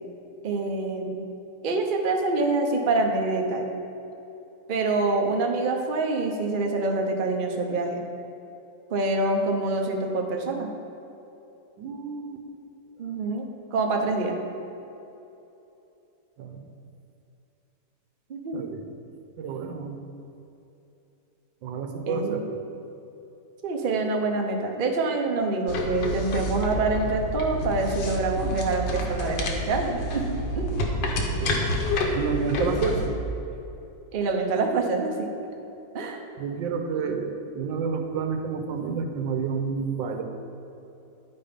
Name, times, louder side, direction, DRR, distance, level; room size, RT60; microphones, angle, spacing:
voice 1, 0.4-1.3 1.6-3.7 4.7-8.0 8.9-10.7 13.0-13.4 13.7-14.4 18.3-18.6 22.1-22.4 23.6-30.8 34.1-35.3 35.9-36.2, right 3 dB, 55° right, 2 dB, 0.5 m, -26 dB
voice 2, 11.8-12.4 16.4-16.7 18.5-18.9 19.4-20.0 21.6-22.4 31.4-31.6 32.1-33.1 36.4-40.2, right 5 dB, 90° right, 5 dB, 1.4 m, -29 dB
sound 1, 25.7-33.1, left 1 dB, 80° left, 1.6 m, -28 dB
10.5 x 4.4 x 5.0 m, 2.9 s
omnidirectional pair, 2.0 m